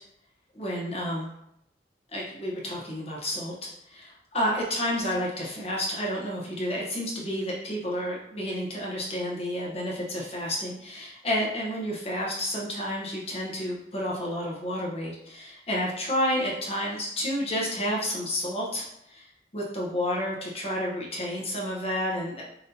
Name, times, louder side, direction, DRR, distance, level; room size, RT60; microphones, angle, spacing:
voice 1, 0.5-1.3 2.1-19.2 19.5-22.4, equal, 35° left, -4 dB, 0.9 m, -30 dB
5.7 x 2.7 x 2.7 m, 0.79 s
head